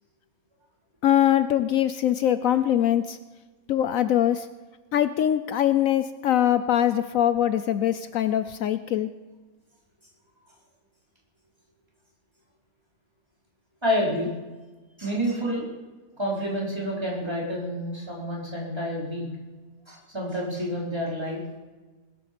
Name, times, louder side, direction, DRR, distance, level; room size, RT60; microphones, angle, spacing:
voice 1, 1.0-3.2 3.7-4.5 4.9-9.1, left 11 dB, 70° left, 12 dB, 1.0 m, -22 dB
voice 2, 13.8-14.3 15.0-15.6 16.2-19.3 19.9-21.6, equal, 15° right, -4 dB, 4.4 m, -28 dB
20.5 x 9.0 x 6.9 m, 1.3 s
omnidirectional pair, 1.5 m